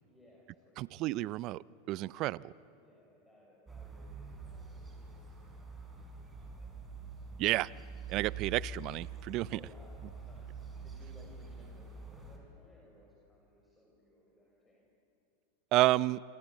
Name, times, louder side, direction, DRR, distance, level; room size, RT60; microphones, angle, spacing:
voice 1, 0.0-1.1 2.5-7.3 9.5-14.9, equal, 10° left, -3 dB, 6.5 m, -62 dB
voice 2, 0.8-2.5 7.4-7.7 8.1-9.6 15.7-16.2, right 17 dB, 50° right, 22 dB, 0.5 m, -31 dB
sound 1, 3.7-12.4, right 4 dB, 15° right, 5.8 m, -46 dB
27.0 x 26.0 x 8.3 m, 2.8 s
hypercardioid pair, 100°, 0 cm